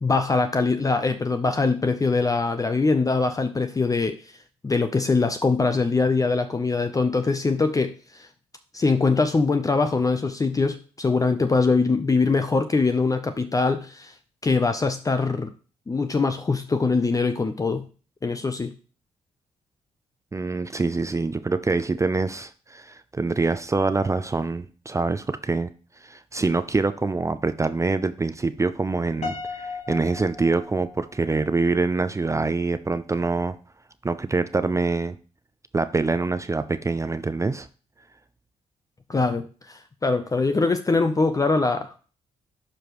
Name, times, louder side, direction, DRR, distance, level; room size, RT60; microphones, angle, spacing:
voice 1, 0.0-4.2 4.6-8.3 8.7-14.1 14.4-15.5 15.9-17.8 18.2-18.7 39.1-41.9, left 4 dB, 25° left, 8 dB, 0.7 m, -23 dB
voice 2, 20.3-25.7 26.0-33.6 34.0-35.2 35.7-37.7, right 3 dB, 25° right, 11 dB, 0.5 m, -25 dB
Piano, 29.2-31.5, left 4 dB, 60° left, 1.9 m, -36 dB
11.5 x 4.9 x 3.1 m, 0.38 s
supercardioid pair, 55°, 13 cm